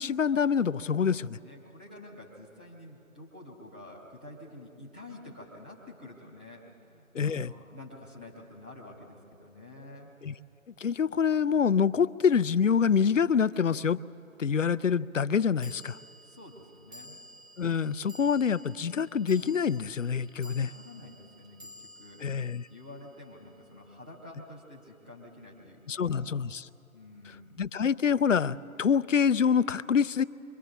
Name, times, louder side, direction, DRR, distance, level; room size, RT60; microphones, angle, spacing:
voice 1, 0.0-1.4 7.1-7.5 10.2-10.3 10.8-14.0 14.4-16.0 17.6-20.7 22.2-22.7 25.9-26.6 27.6-30.2, left 6 dB, 60° left, 17 dB, 0.5 m, -26 dB
voice 2, 1.4-10.1 16.2-17.2 20.4-22.2 22.7-26.2 26.9-27.6, left 1 dB, 5° right, -7 dB, 0.9 m, -49 dB
sound 1, 13.5-13.6 15.6-24.0, left 1 dB, 65° right, 2.9 m, -52 dB
29.5 x 24.0 x 3.8 m, 2.8 s
figure-of-eight pair, 155°, 43 cm